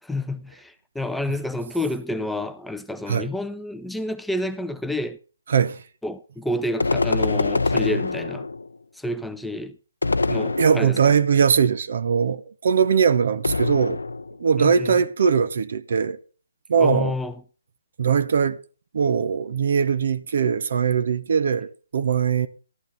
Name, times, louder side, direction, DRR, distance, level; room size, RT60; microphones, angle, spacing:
voice 1, 0.0-5.2 6.0-8.5 8.9-9.8 10.3-11.2 14.6-15.0 16.8-17.4, left 1 dB, ahead, 0.5 m, -29 dB
voice 2, 5.5-5.8 10.6-14.0 14.4-16.2 16.7-17.1 18.0-18.6 18.9-22.5, right 6 dB, 55° right, 0.7 m, -21 dB
sound 1, 6.8-8.8 10.0-11.2 13.4-14.4, left 3 dB, 80° left, 0.6 m, -24 dB
13.5 x 11.5 x 3.9 m
figure-of-eight pair, 145°, 0 cm